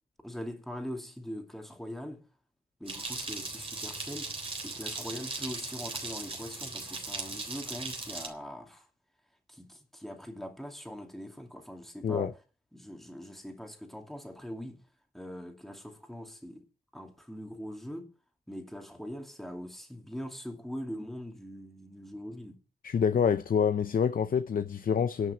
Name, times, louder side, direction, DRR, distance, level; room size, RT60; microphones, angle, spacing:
voice 1, 0.2-2.2 2.8-4.3 4.6-8.9 9.5-12.4 12.7-14.8 15.1-16.6 16.9-18.1 18.5-22.6, equal, ahead, 2.5 m, -42 dB
sound 1, 2.9-8.3, right 3 dB, 35° right, 3.6 m, -38 dB
voice 2, 22.8-25.3, left 7 dB, 65° left, 0.6 m, -27 dB
11.0 x 6.1 x 8.9 m
wide cardioid pair, 155°, 16 cm